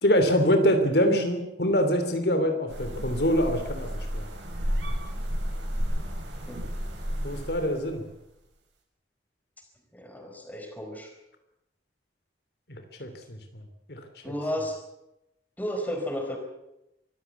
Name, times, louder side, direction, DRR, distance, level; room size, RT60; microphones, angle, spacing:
voice 1, 0.0-4.3 7.2-8.0 12.7-13.6 13.9-14.0, equal, 65° left, 7 dB, 3.1 m, -25 dB
sound 1, 2.7-8.0, equal, 85° right, 6.9 m, -32 dB
voice 2, 9.9-11.1 14.2-14.8 15.6-16.4, equal, 10° left, 3 dB, 4.4 m, -33 dB
24.0 x 15.5 x 8.3 m, 0.88 s
head